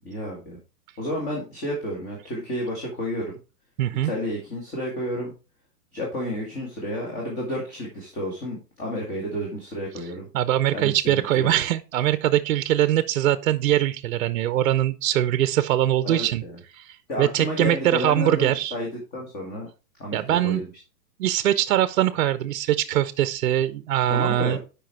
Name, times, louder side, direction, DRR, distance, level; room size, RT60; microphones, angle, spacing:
voice 1, 0.0-0.6 1.0-3.3 4.0-5.3 5.9-10.3 10.7-11.5 16.0-16.6 17.1-19.7 20.0-20.6 24.1-24.6, equal, 20° left, 1.7 m, -31 dB
voice 2, 3.8-4.1 10.3-16.4 16.7-16.9 17.2-18.7 20.1-20.6 21.2-24.6, right 12 dB, 60° right, 0.7 m, -22 dB
7.4 x 5.1 x 4.5 m
hypercardioid pair, 165°, 48 cm